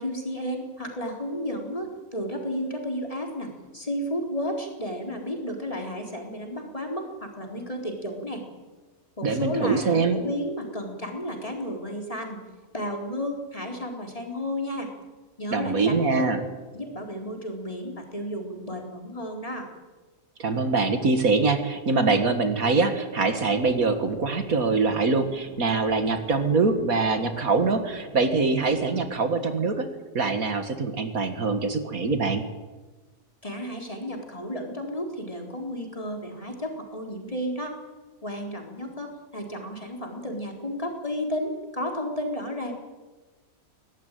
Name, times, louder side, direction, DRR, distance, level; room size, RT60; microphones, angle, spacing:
voice 1, 0.0-8.4 9.2-12.4 12.7-14.9 15.4-16.3 16.7-19.7 33.4-37.7 38.2-42.7, equal, 20° left, 1 dB, 4.1 m, -32 dB
voice 2, 9.2-10.2 15.5-16.4 20.4-29.9 30.1-32.4, right 4 dB, 70° right, 8 dB, 2.2 m, -24 dB
sound 1, 23.3-29.1, left 1 dB, 80° left, 4.7 m, -46 dB
22.5 x 18.0 x 9.2 m, 1.2 s
omnidirectional pair, 1.6 m